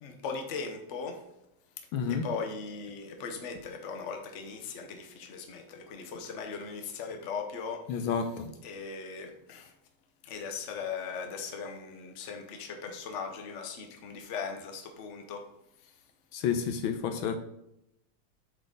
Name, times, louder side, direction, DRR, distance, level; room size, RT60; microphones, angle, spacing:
voice 1, 0.0-1.2 2.2-7.8 8.6-9.7 10.2-15.4, left 5 dB, 45° left, 4 dB, 1.0 m, -38 dB
voice 2, 1.9-2.2 7.9-8.5 16.3-17.4, left 7 dB, 80° left, 7 dB, 1.5 m, -30 dB
8.0 x 4.0 x 3.8 m, 0.83 s
omnidirectional pair, 2.3 m